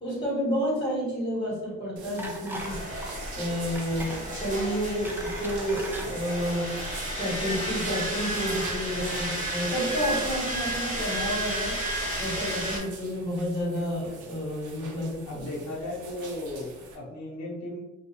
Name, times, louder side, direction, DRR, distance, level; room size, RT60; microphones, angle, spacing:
voice 1, 0.0-2.8 3.3-15.4, equal, 20° left, -6 dB, 1.2 m, -30 dB
sound 1, 2.0-17.0, right 4 dB, 75° right, 0.6 m, -45 dB
sound 2, 2.2-2.8 3.0-3.2 3.8-4.2 4.7-6.1 6.8-7.0 7.3-7.4, right 1 dB, 5° right, 0.4 m, -39 dB
sound 3, 2.6-12.8, right 1 dB, 25° right, 1.1 m, -32 dB
voice 2, 15.3-17.8, left 1 dB, 60° left, -5 dB, 0.8 m, -36 dB
2.4 x 2.3 x 2.8 m, 1.1 s
cardioid pair, 90°, 30 cm